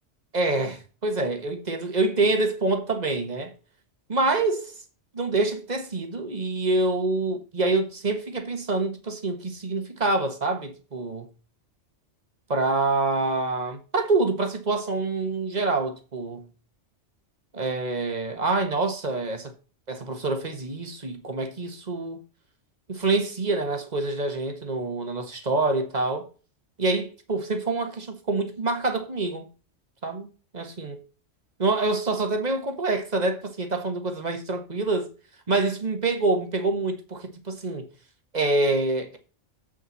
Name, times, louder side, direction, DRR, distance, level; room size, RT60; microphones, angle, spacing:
voice 1, 0.3-3.5 4.1-4.7 5.1-11.3 12.5-16.4 17.5-19.5 19.9-22.2 22.9-26.3 26.8-29.5 30.0-30.3 30.5-31.0 31.6-35.1 35.5-37.9 38.3-39.2, right 3 dB, 35° right, 1.5 m, -26 dB
7.9 x 7.7 x 4.1 m
omnidirectional pair, 1.2 m